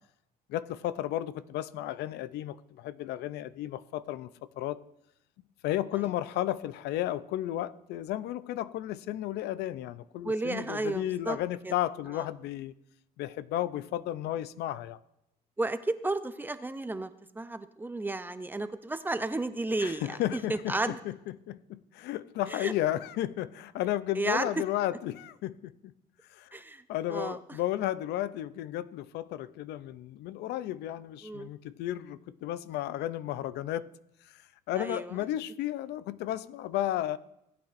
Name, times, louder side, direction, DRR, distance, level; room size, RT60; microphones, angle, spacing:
voice 1, 0.5-4.3 4.6-4.8 5.6-12.7 13.2-15.0 19.8-25.9 26.3-26.6 26.9-33.9 34.3-34.4 34.7-37.2, left 13 dB, 80° left, 0.5 m, -33 dB
voice 2, 10.2-11.4 11.6-11.7 12.1-12.2 15.6-21.0 22.5-22.7 24.2-24.5 26.5-26.8 27.1-27.4 31.2-31.5 34.8-35.1, right 2 dB, 10° right, 0.5 m, -33 dB
17.5 x 8.9 x 2.5 m
cardioid pair, 110°, 17 cm